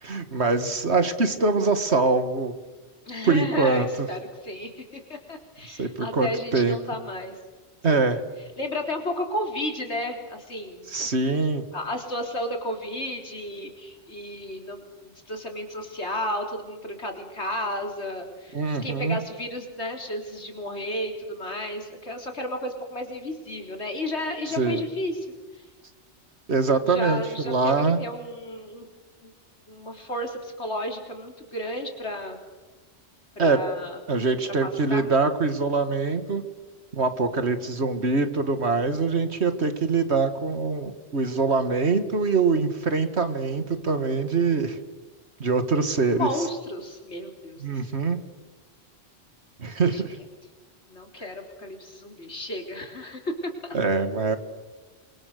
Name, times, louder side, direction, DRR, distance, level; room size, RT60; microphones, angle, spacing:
voice 1, 0.0-2.5 3.2-4.1 5.7-6.8 7.8-8.2 10.9-11.6 18.5-19.2 24.6-24.8 26.5-28.0 33.4-33.6 34.1-36.4 36.9-44.8 45.4-46.3 47.6-48.2 49.6-50.1 53.7-54.4, right 4 dB, 70° right, 9 dB, 2.2 m, -24 dB
voice 2, 3.1-7.3 7.8-8.0 8.6-10.8 11.7-25.3 26.8-28.9 29.2-29.3 29.7-32.4 33.4-34.0 34.5-35.1 45.9-47.6 49.8-50.0 50.9-53.8, left 1 dB, 75° left, 3 dB, 4.2 m, -33 dB
29.0 x 23.5 x 6.7 m, 1.3 s
omnidirectional pair, 1.1 m